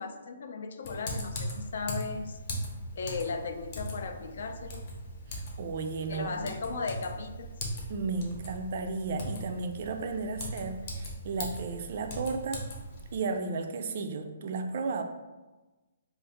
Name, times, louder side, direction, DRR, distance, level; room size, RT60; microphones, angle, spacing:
voice 1, 0.0-2.4 3.0-4.9 6.1-7.5, left 4 dB, 65° left, 7 dB, 0.3 m, -36 dB
Typing, 0.8-13.2, equal, 40° left, 0.8 m, -39 dB
voice 2, 5.3-6.5 7.9-12.6 13.1-15.0, right 4 dB, 50° right, 5 dB, 0.3 m, -34 dB
2.5 x 2.4 x 4.0 m, 1.2 s
hypercardioid pair, 160°, 0 cm